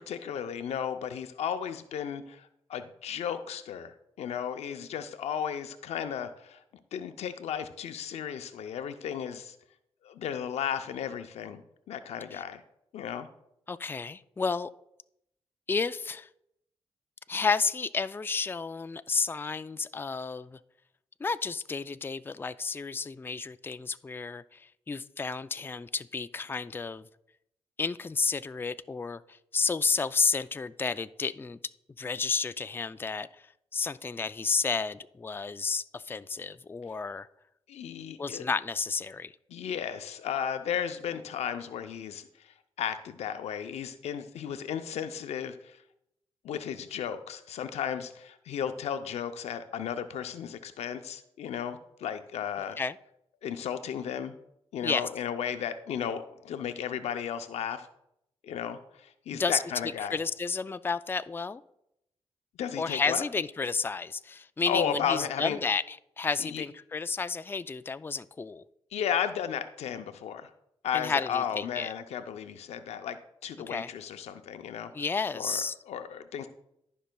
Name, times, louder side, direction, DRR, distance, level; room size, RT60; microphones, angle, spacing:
voice 1, 0.0-6.6 6.9-9.6 10.0-11.6 11.9-12.6 12.9-13.3 37.7-38.5 39.5-45.8 46.4-52.8 53.4-54.3 54.7-57.9 58.4-60.2 62.6-63.2 64.7-65.6 66.4-66.6 68.9-70.5 70.8-74.9 75.3-76.5, left 8 dB, 90° left, 9 dB, 0.5 m, -34 dB
voice 2, 13.7-14.7 15.7-16.3 17.3-20.6 21.2-27.1 27.8-31.6 32.0-33.5 33.7-37.3 38.2-39.3 52.8-52.9 54.8-55.1 59.3-61.6 62.8-68.6 70.9-71.9 73.7-73.9 74.9-75.7, left 4 dB, 20° left, 13 dB, 0.3 m, -31 dB
15.0 x 5.4 x 2.2 m, 0.80 s
cardioid pair, 60°, 11 cm